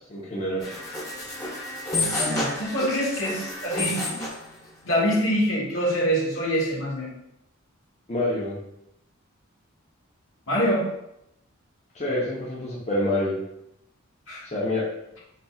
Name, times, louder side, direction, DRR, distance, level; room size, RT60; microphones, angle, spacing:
voice 1, 0.1-0.8 8.1-8.6 11.9-13.4 14.4-14.8, left 1 dB, 30° left, -6 dB, 0.9 m, -27 dB
sound 1, 0.6-4.4, left 2 dB, 15° left, 1.1 m, -30 dB
voice 2, 2.1-4.0 4.8-7.1 10.5-10.8 14.3-14.4, equal, 70° left, -5 dB, 1.7 m, -25 dB
5.4 x 4.1 x 2.4 m, 0.82 s
head